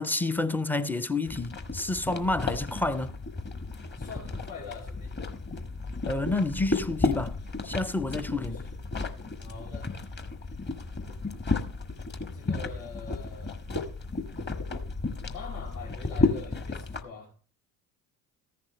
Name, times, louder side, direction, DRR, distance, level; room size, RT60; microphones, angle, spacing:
voice 1, 0.0-3.1 6.1-7.4 7.6-8.6, left 2 dB, 5° left, 0.5 m, -29 dB
sound 1, 1.2-17.0, left 2 dB, 20° left, 1.4 m, -33 dB
voice 2, 4.0-5.2 8.3-8.8 9.4-9.9 12.3-13.6 15.2-17.3, left 5 dB, 65° left, 2.8 m, -44 dB
14.5 x 10.5 x 3.2 m
figure-of-eight pair, 65°, 48 cm